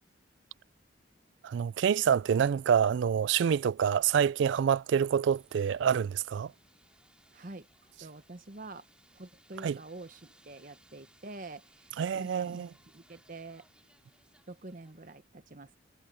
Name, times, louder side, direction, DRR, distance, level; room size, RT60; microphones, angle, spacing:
voice 1, 1.4-6.5 9.6-9.8 12.0-12.7, right 7 dB, 65° right, 0.3 m, -27 dB
sound 1, 5.2-15.2, right 1 dB, 5° right, 3.4 m, -65 dB
voice 2, 7.3-7.7 8.0-8.9 9.1-13.7 14.5-15.8, right 2 dB, 45° right, 1.1 m, -47 dB
head